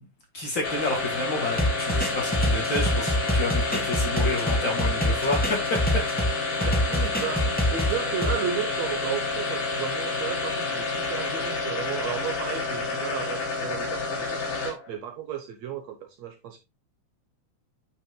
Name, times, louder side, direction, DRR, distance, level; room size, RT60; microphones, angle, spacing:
voice 1, 0.3-6.0, left 2 dB, 40° left, 2.3 m, -30 dB
sound 1, 0.6-14.9, left 3 dB, 90° left, 4.5 m, -29 dB
sound 2, 1.6-6.3 6.6-8.3, equal, 5° left, 1.0 m, -25 dB
voice 2, 6.5-14.4 14.6-16.6, right 8 dB, 65° right, 2.1 m, -34 dB
10.0 x 6.2 x 2.3 m
omnidirectional pair, 3.5 m